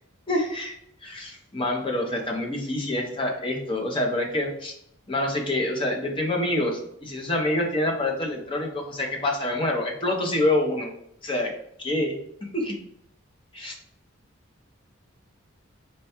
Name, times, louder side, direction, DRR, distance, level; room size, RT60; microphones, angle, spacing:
voice 1, 0.3-4.7 5.1-10.9 11.2-11.5 11.8-12.8 13.5-13.7, left 1 dB, 25° left, 1 dB, 0.6 m, -27 dB
4.3 x 2.2 x 4.2 m, 0.73 s
head